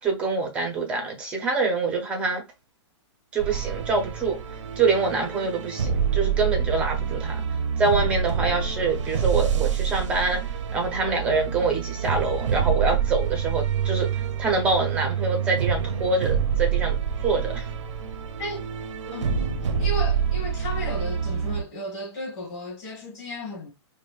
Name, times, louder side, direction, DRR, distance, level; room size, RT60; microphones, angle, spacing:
voice 1, 0.0-2.4 3.3-4.4 4.8-7.4 7.8-10.4 10.7-14.1 14.4-17.0 17.2-17.7, right 3 dB, 10° right, 0.5 m, -25 dB
sound 1, 3.4-21.6, right 7 dB, 90° right, 0.6 m, -27 dB
voice 2, 19.1-23.7, left 1 dB, 20° left, 1.4 m, -34 dB
5.2 x 2.1 x 2.3 m
hypercardioid pair, 175°, 15 cm